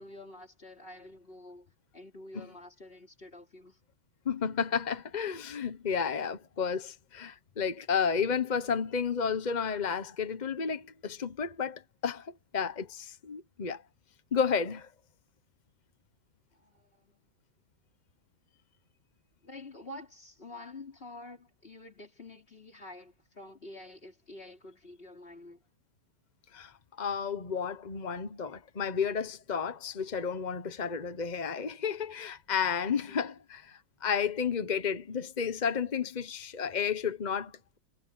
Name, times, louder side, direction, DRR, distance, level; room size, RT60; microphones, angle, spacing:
voice 1, 0.0-3.8 16.5-17.2 19.4-25.6 33.1-33.2, left 2 dB, 25° left, 3.7 m, -48 dB
voice 2, 4.2-13.8 14.3-14.9 26.5-37.8, left 6 dB, 40° left, 0.6 m, -32 dB
omnidirectional pair, 2.2 m